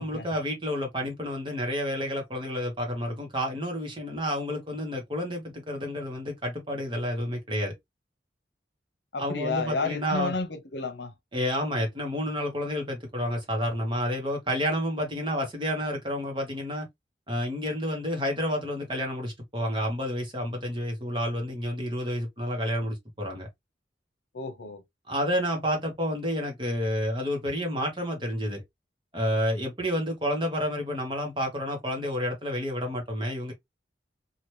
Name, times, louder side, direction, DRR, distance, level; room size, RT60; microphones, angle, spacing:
voice 1, 0.0-7.7 9.2-10.3 11.3-16.9 17.3-23.5 25.1-28.6 29.1-33.5, equal, 25° right, 1.0 m, -30 dB
voice 2, 9.1-11.1 24.3-24.8, left 3 dB, 80° left, 0.8 m, -31 dB
2.9 x 2.5 x 3.1 m
head